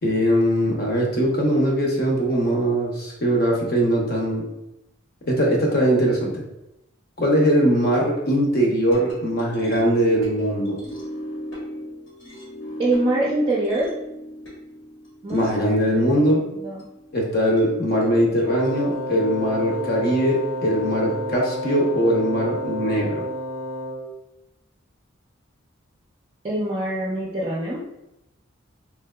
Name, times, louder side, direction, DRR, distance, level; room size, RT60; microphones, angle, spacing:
voice 1, 0.0-4.4 5.3-6.4 7.2-10.8 15.3-16.4 17.1-23.2, equal, 45° left, -2 dB, 0.7 m, -21 dB
sound 1, 8.9-21.3, equal, 65° left, 1.0 m, -39 dB
voice 2, 12.8-13.9 15.2-16.3 16.5-16.8 26.4-27.8, right 2 dB, 30° right, -6 dB, 0.5 m, -25 dB
Wind instrument woodwind instrument, 18.4-24.2, equal, 80° left, 0.5 m, -30 dB
3.3 x 2.7 x 2.2 m, 0.88 s
head